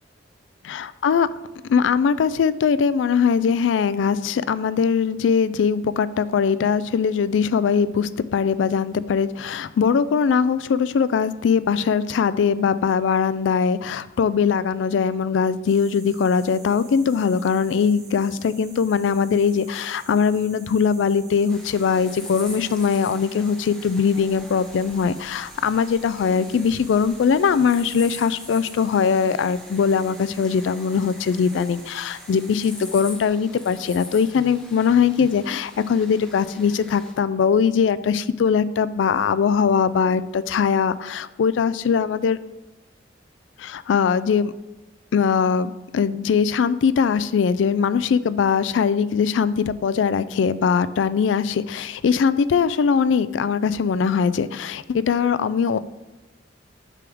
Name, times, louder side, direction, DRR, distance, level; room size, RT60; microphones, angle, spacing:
voice 1, 0.6-1.3 1.7-42.4 43.6-44.5 45.1-55.8, left 6 dB, 85° left, 16 dB, 0.3 m, -21 dB
sound 1, 15.7-32.9, right 4 dB, 40° right, 1.2 m, -48 dB
sound 2, 21.5-37.1, left 1 dB, 5° left, 0.9 m, -43 dB
6.8 x 3.5 x 6.1 m, 1.1 s
head